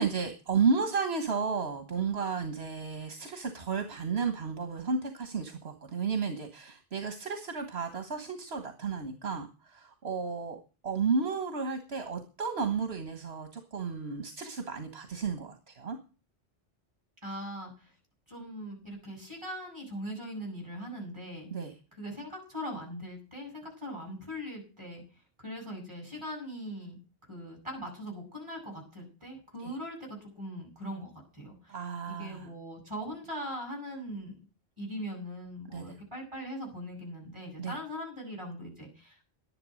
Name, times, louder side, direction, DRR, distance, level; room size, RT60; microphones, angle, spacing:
voice 1, 0.0-16.0 21.5-21.7 29.6-29.7 31.7-32.5 35.7-35.9 37.6-37.8, right 5 dB, 75° right, 6 dB, 1.7 m, -32 dB
voice 2, 17.2-17.9 18.3-21.5 21.9-27.0 27.3-31.8 32.1-34.4 34.8-39.3, equal, 25° right, 0 dB, 8.1 m, -41 dB
11.5 x 11.0 x 6.3 m, 0.35 s
omnidirectional pair, 1.1 m